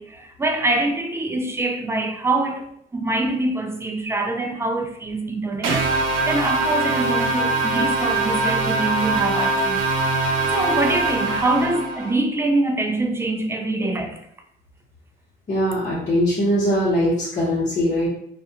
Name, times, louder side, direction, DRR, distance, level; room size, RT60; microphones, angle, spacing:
voice 1, 0.0-5.8 6.3-9.8 10.5-14.2, right 2 dB, 15° right, 0.4 m, -24 dB
sound 1, 5.6-12.1, right 3 dB, 80° right, 0.6 m, -22 dB
voice 2, 15.5-18.1, equal, 40° left, 0.9 m, -21 dB
2.4 x 2.2 x 2.8 m
cardioid pair, 90°, 20 cm